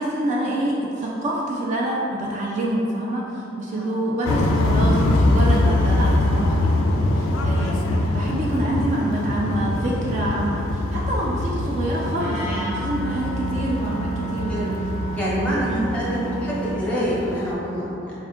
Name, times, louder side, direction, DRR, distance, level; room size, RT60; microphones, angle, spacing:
voice 1, 0.0-14.8 15.6-15.9, right 1 dB, 40° right, -4 dB, 0.3 m, -27 dB
sound 1, 4.2-17.5, left 1 dB, 80° left, 0.3 m, -23 dB
Wind instrument woodwind instrument, 11.9-16.8, right 3 dB, 85° right, 1.0 m, -31 dB
voice 2, 15.2-18.1, equal, 5° left, -7 dB, 0.8 m, -26 dB
4.3 x 2.4 x 3.5 m, 2.9 s
head